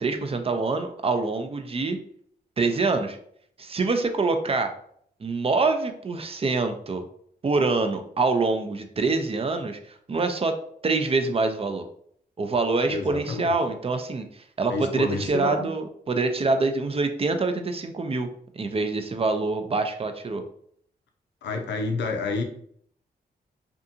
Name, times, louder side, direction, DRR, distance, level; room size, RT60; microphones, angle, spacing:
voice 1, 0.0-2.0 2.6-3.2 3.6-4.7 5.2-7.0 7.4-9.8 10.1-10.5 10.8-11.8 12.4-14.3 14.6-18.3 18.5-20.4, right 3 dB, 35° right, 7 dB, 0.4 m, -25 dB
voice 2, 12.9-13.5 14.7-15.7 21.4-22.4, left 3 dB, 85° left, 3 dB, 0.5 m, -29 dB
2.6 x 2.4 x 2.6 m, 0.65 s
cardioid pair, 55°, 18 cm